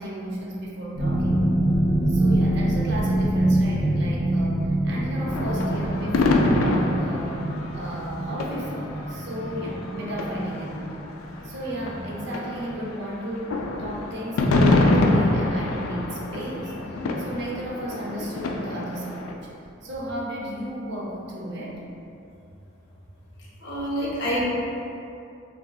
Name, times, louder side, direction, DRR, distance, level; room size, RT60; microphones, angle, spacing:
voice 1, 0.0-1.4 2.1-7.4 7.7-11.0 11.4-19.5 19.8-21.8 23.6-23.9, right 1 dB, 55° right, -4 dB, 0.5 m, -34 dB
sound 1, 0.9-11.6 11.9-12.3 12.7-12.8, right 1 dB, 75° right, 0.9 m, -25 dB
sound 2, 5.2-11.5 11.8-19.3, left 2 dB, 85° left, 0.3 m, -26 dB
voice 2, 23.6-24.5, equal, 55° left, -7 dB, 0.7 m, -26 dB
3.9 x 2.5 x 2.3 m, 2.6 s
head